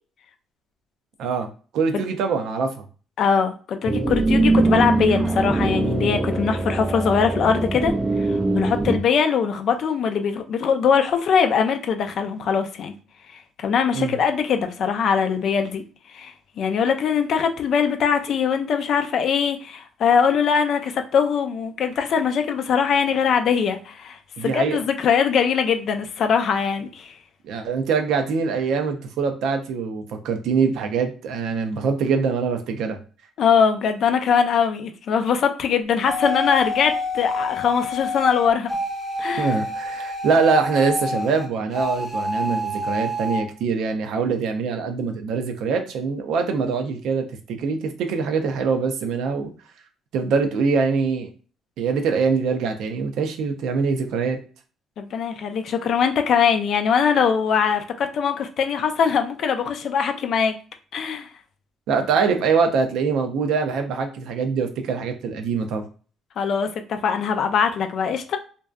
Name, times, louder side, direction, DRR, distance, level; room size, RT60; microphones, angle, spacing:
voice 1, 1.2-2.8 13.9-14.2 24.4-24.8 27.4-33.0 39.4-49.5 50.1-51.3 51.8-54.4 61.9-65.9, right 5 dB, 75° right, 6 dB, 0.5 m, -23 dB
voice 2, 3.2-12.9 13.3-15.8 16.1-27.1 33.4-38.8 39.2-39.6 55.0-60.5 60.9-61.3 66.4-68.4, left 6 dB, 65° left, 7 dB, 0.4 m, -22 dB
sound 1, 3.8-9.0, right 2 dB, 15° right, 0.3 m, -22 dB
sound 2, 36.1-41.5 41.7-43.4, left 1 dB, 10° left, 0.7 m, -27 dB
2.6 x 2.2 x 2.3 m, 0.38 s
supercardioid pair, 75°, 0 cm